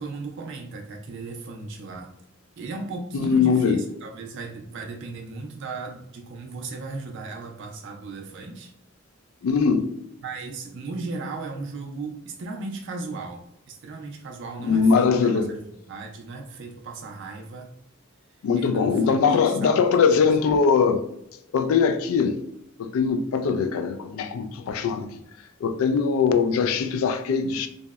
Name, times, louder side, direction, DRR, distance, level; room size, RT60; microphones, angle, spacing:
voice 1, 0.0-2.2 2.6-8.7 10.2-13.4 13.7-17.7 18.6-19.8, right 3 dB, 60° right, 0.4 m, -36 dB
voice 2, 3.1-3.8 9.4-9.9 14.6-15.5 18.4-21.1 21.5-22.4 22.8-25.1 25.6-27.7, left 5 dB, 80° left, 0.3 m, -21 dB
2.7 x 2.0 x 2.2 m
head